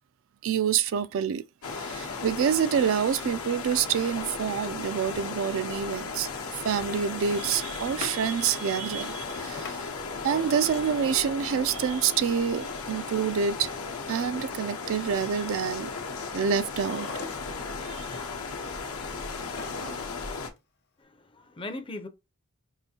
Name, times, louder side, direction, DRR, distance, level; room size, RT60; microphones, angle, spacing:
voice 1, 0.4-1.4 1.7-6.3 6.6-9.8 10.2-13.7 14.1-15.9 16.3-17.1 17.8-18.1, right 7 dB, 60° right, 0.3 m, -27 dB
sound 1, 1.6-20.5, left 4 dB, 80° left, 0.9 m, -36 dB
Drawer open or close, 3.6-5.1 6.8-8.2 9.4-11.2 12.4-14.1 16.5-17.8 19.2-20.3 20.6-20.7, left 3 dB, 50° left, 0.8 m, -43 dB
voice 2, 21.0-22.1, left 2 dB, 25° left, 0.5 m, -39 dB
4.8 x 2.6 x 2.8 m
head